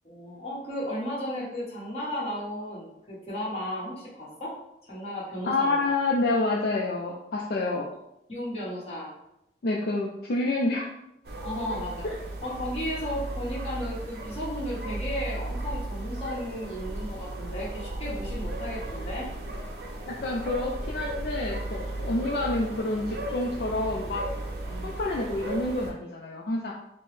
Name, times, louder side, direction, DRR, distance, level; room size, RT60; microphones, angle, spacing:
voice 1, 0.0-4.5 4.8-5.9 8.3-9.1 11.4-12.1 12.4-19.3 24.7-24.9, equal, 35° left, -6 dB, 1.2 m, -34 dB
voice 2, 5.4-7.9 9.6-10.9 12.0-12.1 20.1-24.2 24.8-26.7, left 2 dB, 55° left, -2 dB, 0.4 m, -28 dB
sound 1, 11.2-25.9, right 1 dB, 60° right, 0.5 m, -35 dB
4.4 x 2.0 x 3.1 m, 0.83 s
head